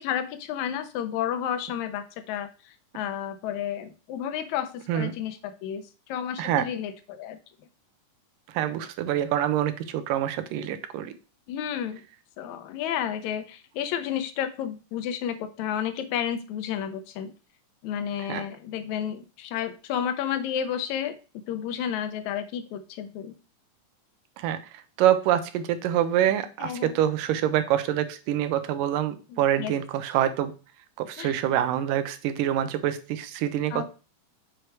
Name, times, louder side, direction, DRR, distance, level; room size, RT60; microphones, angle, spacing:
voice 1, 0.0-7.4 11.5-12.0 12.4-17.3 17.8-21.2 21.5-23.4 26.6-27.0 29.3-29.7 31.2-31.3 33.7-33.8, left 9 dB, 75° left, 10 dB, 1.9 m, -31 dB
voice 2, 8.5-11.1 18.2-18.4 24.4-30.5 31.0-33.8, right 11 dB, 85° right, 11 dB, 2.3 m, -26 dB
6.5 x 4.7 x 4.6 m, 0.34 s
omnidirectional pair, 3.8 m